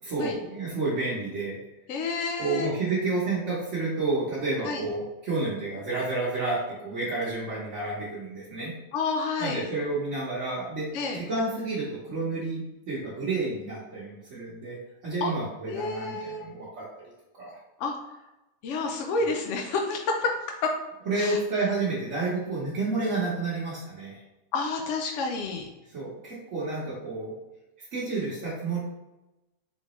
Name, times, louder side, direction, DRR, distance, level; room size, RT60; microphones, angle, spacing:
voice 1, 0.0-1.6 2.4-8.7 9.4-10.9 11.1-14.8 15.0-16.8 17.3-17.6 19.2-19.3 21.1-24.2 25.9-27.3 27.8-28.8, right 3 dB, 70° right, -9 dB, 1.4 m, -30 dB
voice 2, 1.9-2.7 4.6-4.8 8.9-9.7 10.9-11.2 15.2-15.3 15.7-16.4 17.8-17.9 18.6-20.4 20.6-20.7 21.2-21.4 24.5-25.7, left 4 dB, 70° left, 2 dB, 0.9 m, -29 dB
3.9 x 3.4 x 3.0 m, 0.99 s
omnidirectional pair, 1.3 m